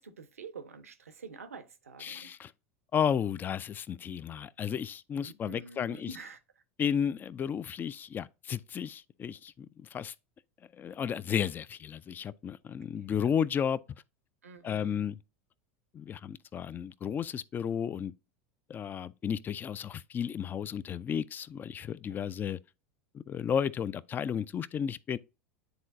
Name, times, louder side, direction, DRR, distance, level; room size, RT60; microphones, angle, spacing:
voice 1, 0.0-2.3 5.1-6.4 13.0-13.1 14.4-15.0 22.3-22.4, right 4 dB, 85° right, 0.7 m, -47 dB
voice 2, 2.0-2.5 2.9-6.1 6.8-10.1 10.8-13.8 14.6-15.2 15.9-18.1 18.7-22.6 23.1-25.2, left 8 dB, 25° left, 0.3 m, -33 dB
9.6 x 3.8 x 2.6 m
hypercardioid pair, 85°, 8 cm